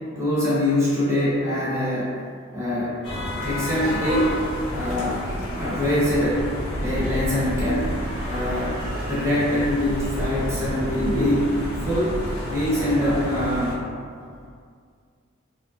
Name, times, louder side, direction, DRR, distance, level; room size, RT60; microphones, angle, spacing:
voice 1, 0.1-2.1 2.5-3.0 3.4-4.3 4.7-5.3 5.6-6.5 6.8-12.2 12.5-13.8, left 1 dB, 15° right, -9 dB, 0.6 m, -24 dB
sound 1, 3.0-13.7, equal, 75° left, 0.7 m, -29 dB
2.7 x 2.4 x 2.3 m, 2.1 s
head